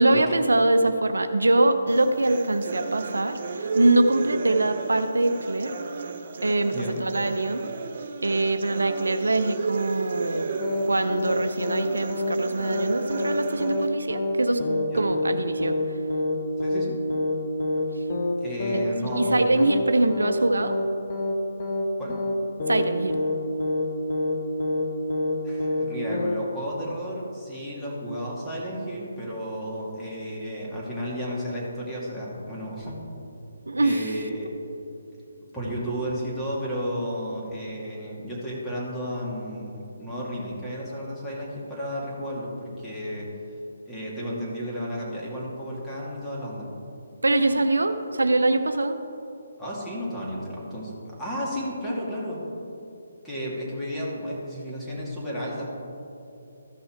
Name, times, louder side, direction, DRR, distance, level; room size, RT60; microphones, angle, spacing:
voice 1, 0.0-5.7 6.4-7.6 8.2-10.5 10.8-15.7 18.8-18.9 19.2-20.8 22.7-23.2 33.7-34.1 47.2-49.0, right 2 dB, 85° right, 8 dB, 0.6 m, -23 dB
sound 1, 1.9-13.9, right 4 dB, 50° right, 0.7 m, -34 dB
sound 2, 10.6-10.9 11.1-11.4 11.6-11.9 12.1-12.4 12.6-12.9 13.1-13.4 13.6-13.9 14.1-14.4 14.6-14.9 15.1-15.4 15.6-15.9 16.1-16.4 16.6-16.9 17.1-17.4 17.6-17.9 18.1-18.4 18.6-18.9 19.1-19.4 19.6-19.9 20.1-20.4 20.6-20.9 21.1-21.4 21.6-21.9 22.1-22.4 22.6-22.9 23.1-23.4 23.6-23.9 24.1-24.4 24.6-24.9 25.1-25.4 25.6-25.9 26.1-26.4, left 2 dB, 45° left, 1.2 m, -26 dB
voice 2, 16.6-17.0 18.4-19.6 22.0-22.2 25.4-33.0 33.8-34.5 35.5-43.3 43.9-46.7 49.6-52.4 53.2-55.7, equal, 5° left, -7 dB, 2.2 m, -33 dB
14.0 x 5.5 x 4.5 m, 2.7 s
figure-of-eight pair, 150°, 0 cm